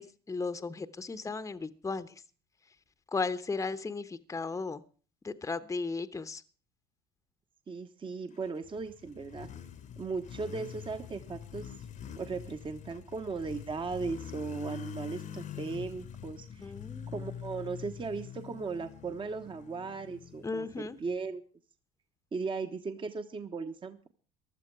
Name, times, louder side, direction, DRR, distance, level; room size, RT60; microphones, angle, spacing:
voice 1, 0.0-2.2 3.1-4.8 5.2-6.4 16.6-17.2 20.4-21.0, left 4 dB, 15° left, 12 dB, 1.0 m, -35 dB
voice 2, 7.7-9.5 10.0-11.7 12.1-16.7 17.1-21.4 22.3-24.1, right 4 dB, 25° right, 8 dB, 1.2 m, -37 dB
Motorcycle, 8.5-21.1, left 9 dB, 40° left, 1.1 m, -45 dB
15.5 x 11.5 x 4.8 m, 0.39 s
supercardioid pair, 85°, 20 cm